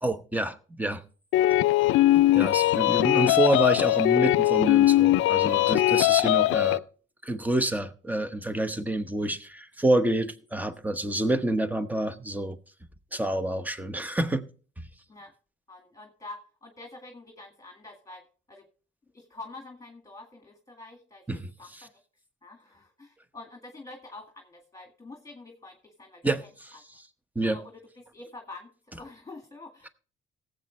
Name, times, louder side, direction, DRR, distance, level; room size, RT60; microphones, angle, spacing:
voice 1, 0.0-1.0 2.1-6.8 7.2-12.6 13.1-14.4 21.3-21.5 21.8-21.9 26.2-26.4 27.3-27.6, right 1 dB, 10° right, 1.0 m, -28 dB
sound 1, 1.3-6.8, left 15 dB, 85° left, 0.4 m, -21 dB
voice 2, 15.7-18.7 19.1-21.9 22.4-26.3 27.4-29.9, left 2 dB, 15° left, 1.9 m, -46 dB
18.0 x 7.9 x 3.2 m
cardioid pair, 90°, 20 cm